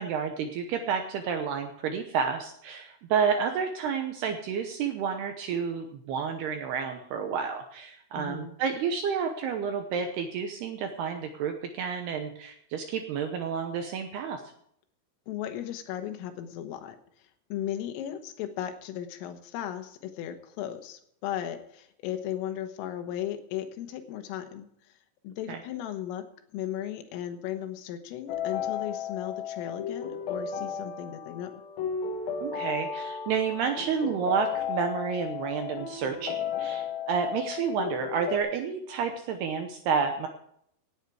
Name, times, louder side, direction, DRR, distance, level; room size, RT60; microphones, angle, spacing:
voice 1, 0.0-14.4 25.5-25.6 32.4-40.3, right 6 dB, 80° right, 5 dB, 2.3 m, -30 dB
voice 2, 8.1-8.5 15.3-24.9 25.2-31.5, left 11 dB, 80° left, 8 dB, 3.8 m, -36 dB
sound 1, 28.3-38.4, left 7 dB, 65° left, 2.6 m, -34 dB
17.5 x 9.1 x 4.9 m, 0.69 s
omnidirectional pair, 5.9 m